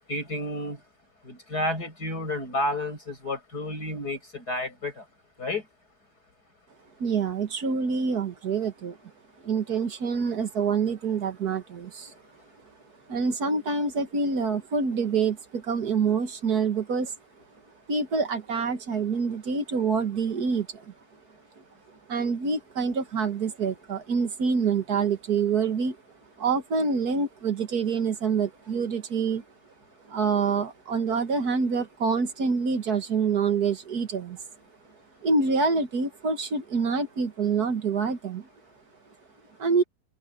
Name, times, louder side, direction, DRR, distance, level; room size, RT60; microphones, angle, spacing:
voice 1, 0.1-0.8 1.2-5.0 5.4-5.6, left 1 dB, 90° left, 8.6 m, -31 dB
voice 2, 7.0-9.0 9.4-12.1 13.1-17.1 17.9-20.9 22.1-26.0 26.4-29.4 30.1-34.4 35.2-38.5 39.6-39.8, right 5 dB, 75° right, 2.3 m, -26 dB
open air
omnidirectional pair, 1.7 m